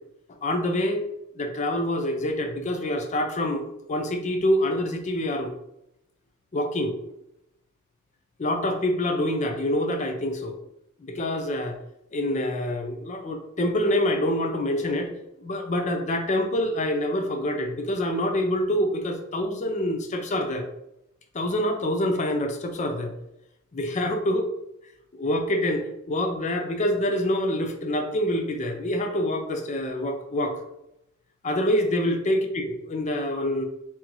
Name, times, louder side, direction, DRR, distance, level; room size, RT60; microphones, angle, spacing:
voice 1, 0.4-1.0 1.4-3.6 3.9-5.5 6.5-6.9 8.4-10.6 11.0-11.8 12.1-15.1 15.4-20.7 21.3-23.1 23.7-24.5 25.1-30.6 31.4-33.6, left 1 dB, 35° left, 5 dB, 0.4 m, -26 dB
3.8 x 2.8 x 2.9 m, 0.84 s
head